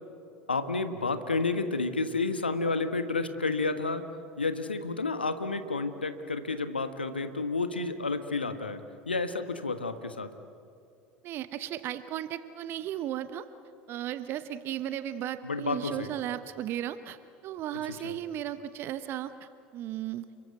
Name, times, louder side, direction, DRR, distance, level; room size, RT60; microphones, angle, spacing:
voice 1, 0.5-4.1 4.4-8.8 9.1-10.3 15.4-16.1 18.0-18.1, left 3 dB, 85° left, 9 dB, 1.4 m, -30 dB
voice 2, 11.2-13.5 13.9-17.2 17.4-20.3, right 11 dB, 45° right, 13 dB, 1.0 m, -35 dB
29.5 x 22.5 x 8.2 m, 2.6 s
figure-of-eight pair, 70°, 5 cm